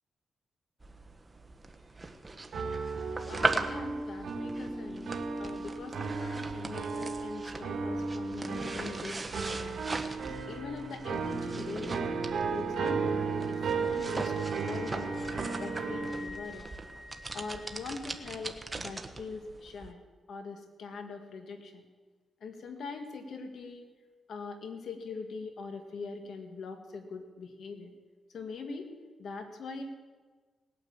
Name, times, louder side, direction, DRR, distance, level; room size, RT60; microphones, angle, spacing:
sound 1, 0.8-19.9, right 3 dB, 25° right, 1.3 m, -40 dB
sound 2, 2.5-16.2, right 4 dB, 70° right, 2.4 m, -35 dB
voice 1, 3.3-5.1 5.4-9.8 10.5-12.1 12.5-15.2 15.6-16.7 17.3-20.0 20.3-21.8 22.4-23.9 24.3-27.9 28.3-28.9 29.2-29.8, left 4 dB, 70° left, 5 dB, 1.8 m, -42 dB
Wind instrument woodwind instrument, 12.5-18.4, left 4 dB, 50° left, 5.6 m, -50 dB
19.0 x 9.3 x 7.2 m, 1.4 s
cardioid pair, 80°, 0 cm